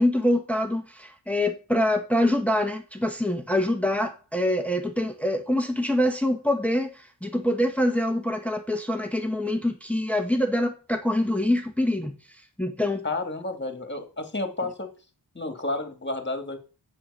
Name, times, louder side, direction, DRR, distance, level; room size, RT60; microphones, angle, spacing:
voice 1, 0.0-12.1 12.6-13.0, left 1 dB, 5° left, 1.2 m, -25 dB
voice 2, 13.0-14.9 15.4-16.6, left 2 dB, 20° left, 2.0 m, -31 dB
7.7 x 7.6 x 5.5 m
wide cardioid pair, 80°, 48 cm